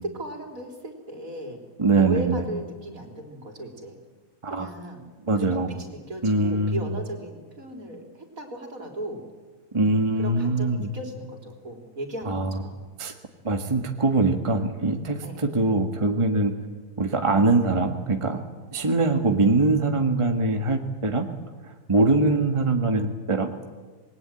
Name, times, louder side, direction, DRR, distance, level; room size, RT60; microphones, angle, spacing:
voice 1, 0.0-1.6 2.0-4.0 4.5-5.0 5.3-9.2 10.2-12.8 15.2-15.5, right 1 dB, 60° right, 2 dB, 4.1 m, -36 dB
voice 2, 1.8-2.4 4.4-4.7 5.3-5.7 6.2-6.8 9.7-10.9 12.3-12.5 13.0-13.1 13.4-15.2 15.5-16.5 17.0-18.4 18.7-21.3 21.9-23.5, right 3 dB, 20° right, 4 dB, 1.5 m, -22 dB
27.5 x 21.0 x 9.0 m, 1.4 s
omnidirectional pair, 1.7 m